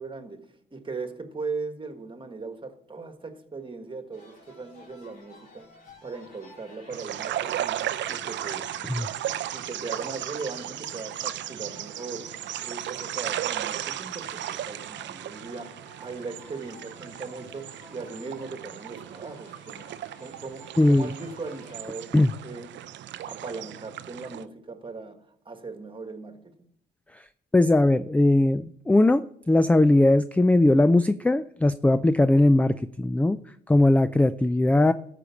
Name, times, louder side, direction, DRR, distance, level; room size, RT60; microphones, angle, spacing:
voice 1, 0.0-5.7 6.0-8.8 9.2-19.9 20.2-22.8 23.3-26.7, right 4 dB, 25° right, 1.5 m, -39 dB
sound 1, 4.1-21.9, left 1 dB, 45° left, 3.9 m, -52 dB
Close Mic Shore, 6.9-24.4, right 12 dB, 65° right, 0.5 m, -35 dB
voice 2, 20.8-21.1 22.1-22.3 27.5-33.4 33.7-34.9, left 2 dB, 5° left, 0.3 m, -20 dB
13.0 x 5.1 x 7.0 m
cardioid pair, 90°, 20 cm